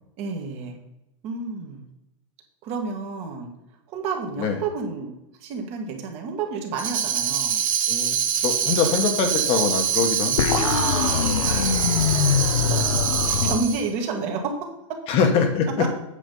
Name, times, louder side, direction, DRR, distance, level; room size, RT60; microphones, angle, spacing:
voice 1, 0.2-0.8 1.2-1.8 2.6-3.5 3.9-5.1 5.4-7.6 10.4-12.0 12.6-15.0 15.8-15.9, right 4 dB, 40° right, 2 dB, 1.8 m, -30 dB
Tambourine, 6.8-13.9, right 8 dB, 80° right, 1.2 m, -25 dB
voice 2, 8.4-10.5 15.1-15.9, left 6 dB, 35° left, 6 dB, 1.3 m, -23 dB
sound 1, 10.4-13.6, left 8 dB, 80° left, 0.7 m, -23 dB
8.5 x 5.2 x 5.4 m, 0.88 s
supercardioid pair, 145°, 17 cm